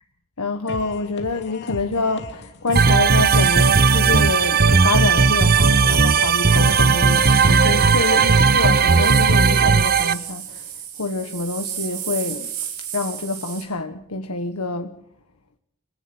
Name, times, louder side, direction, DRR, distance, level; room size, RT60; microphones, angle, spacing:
voice 1, 0.4-10.7 11.0-12.5 12.9-14.9, left 3 dB, 80° left, 1.4 m, -26 dB
sound 1, 0.7-8.7, left 1 dB, 50° left, 2.7 m, -36 dB
sound 2, 2.7-13.6, right 9 dB, 80° right, 7.2 m, -31 dB
sound 3, 2.8-10.1, right 5 dB, 45° right, 0.8 m, -16 dB
28.0 x 18.0 x 6.1 m
head